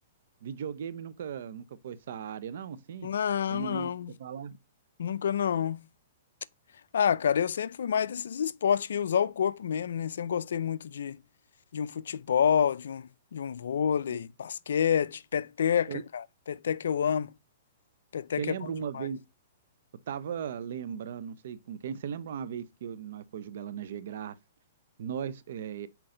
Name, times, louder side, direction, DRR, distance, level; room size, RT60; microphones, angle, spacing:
voice 1, 0.4-3.1 3.5-3.9 4.2-4.5 15.9-16.0 18.4-19.2 20.1-24.3 25.0-25.9, right 8 dB, 65° right, 0.7 m, -37 dB
voice 2, 3.0-4.1 5.0-5.8 6.9-11.2 11.7-17.3 18.1-18.5 18.9-19.1, left 8 dB, 80° left, 0.4 m, -28 dB
5.8 x 4.5 x 3.8 m
hypercardioid pair, 145°, 0 cm